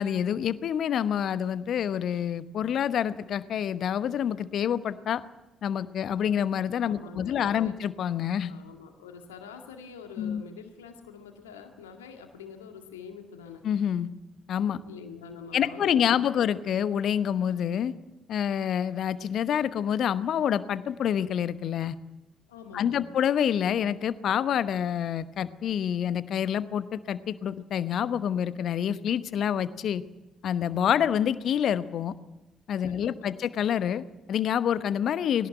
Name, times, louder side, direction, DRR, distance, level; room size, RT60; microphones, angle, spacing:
voice 1, 0.0-5.2 5.6-8.5 10.2-10.4 13.6-14.1 14.5-14.8 15.5-17.9 18.3-22.0 22.7-30.0 30.4-32.1 32.7-35.5, left 9 dB, 55° left, 15 dB, 1.0 m, -27 dB
voice 2, 6.9-7.8 8.5-13.6 14.9-16.5 22.5-23.1 32.9-33.3, left 6 dB, 75° left, 4 dB, 2.0 m, -45 dB
21.0 x 18.0 x 9.0 m, 1.0 s
figure-of-eight pair, 45°, 0 cm